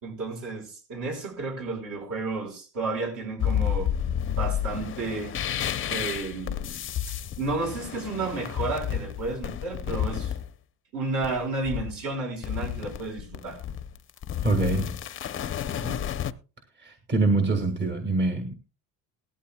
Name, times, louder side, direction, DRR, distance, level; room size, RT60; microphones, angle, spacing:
voice 1, 0.0-3.9 4.2-5.4 5.9-6.7 7.1-10.3 10.9-13.6 15.7-16.0, right 3 dB, 60° right, 5.1 m, -32 dB
sound 1, 3.4-10.5 11.2-12.0 12.4-16.3, left 10 dB, 35° left, 0.7 m, -31 dB
voice 2, 14.4-15.0 16.8-18.5, right 3 dB, 30° right, 1.8 m, -25 dB
18.5 x 13.0 x 2.2 m
cardioid pair, 135°, 35 cm